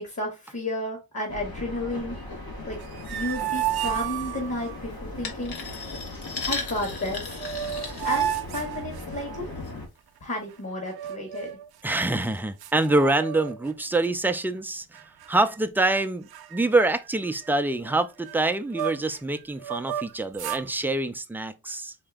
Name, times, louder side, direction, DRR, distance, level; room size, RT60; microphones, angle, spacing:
voice 1, 0.0-2.1 2.6-2.8 3.1-5.5 6.4-7.3 8.0-9.5 10.2-11.6, left 1 dB, 45° left, 1.6 m, -32 dB
sound 1, 1.3-9.9, left 1 dB, 70° left, 1.7 m, -38 dB
sound 2, 2.7-4.8 6.9-7.0 7.3-9.5 10.9-11.7 12.2-12.3 12.6-13.7 14.0-14.4 14.9-15.6 15.9-16.0 16.3-19.2 19.6-20.7, right 11 dB, 85° right, 0.6 m, -32 dB
sound 3, 5.2-8.9 9.4-9.7 10.2-10.3, left 4 dB, 90° left, 0.9 m, -36 dB
voice 2, 11.8-15.0 15.3-21.9, right 2 dB, 5° right, 0.4 m, -25 dB
4.3 x 2.9 x 3.5 m
wide cardioid pair, 100°, 37 cm